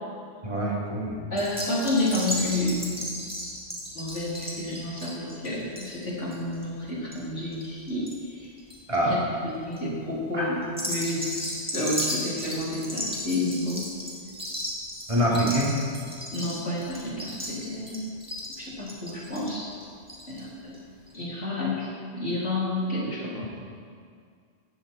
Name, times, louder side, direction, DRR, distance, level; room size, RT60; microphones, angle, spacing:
voice 1, 0.4-1.2 8.9-9.2 10.3-10.5 15.1-15.7, equal, 25° right, -6 dB, 3.6 m, -24 dB
voice 2, 1.3-3.0 3.9-8.1 8.4-8.5 9.1-10.6 10.9-11.3 11.7-13.9 16.3-18.1 18.6-19.8 20.3-20.8 21.1-23.5, left 1 dB, 80° left, -6 dB, 4.3 m, -30 dB
sound 1, 1.4-8.1 8.4-9.0 9.5-9.8 10.6-20.4 20.7-20.8 21.1-21.2, equal, 5° right, 2.8 m, -35 dB
17.0 x 13.5 x 4.6 m, 2.2 s
omnidirectional pair, 1.2 m